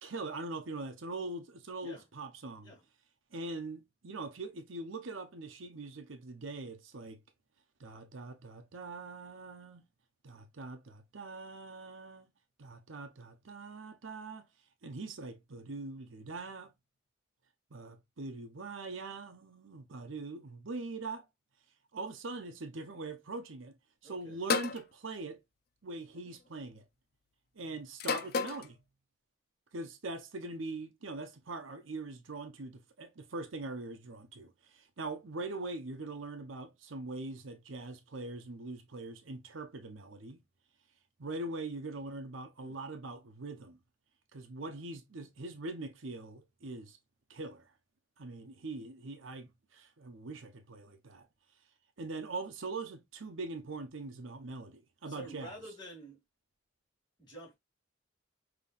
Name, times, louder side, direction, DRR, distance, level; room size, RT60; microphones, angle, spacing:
voice 1, 0.0-2.7 3.3-7.2 7.8-9.8 10.2-12.3 12.6-14.5 14.8-16.7 17.7-21.3 21.9-23.8 24.0-25.4 25.8-26.8 27.5-28.8 29.7-40.4 41.2-43.8 44.3-47.0 47.3-47.7 48.2-51.3 52.0-55.5, right 3 dB, 75° right, 0.8 m, -42 dB
voice 2, 24.0-24.4 42.6-42.8 55.1-56.2 57.2-57.5, right 1 dB, 20° left, 2.5 m, -48 dB
sound 1, 24.5-24.8 26.0-26.4 28.0-28.7, left 5 dB, 50° left, 0.5 m, -32 dB
5.5 x 3.0 x 2.5 m
head